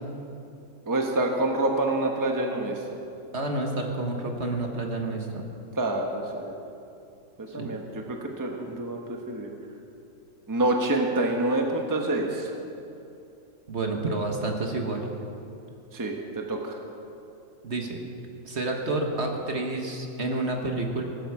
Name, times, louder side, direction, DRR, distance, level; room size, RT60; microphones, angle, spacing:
voice 1, 0.9-2.8 5.8-6.6 7.4-7.8 8.1-9.5 10.5-12.5 15.9-16.8, right 2 dB, 15° right, 2 dB, 1.1 m, -27 dB
voice 2, 3.3-5.4 7.5-7.7 13.7-15.1 17.6-18.0 18.4-21.0, right 2 dB, 50° right, 2 dB, 1.6 m, -29 dB
18.0 x 13.0 x 4.9 m, 2.7 s
omnidirectional pair, 1.5 m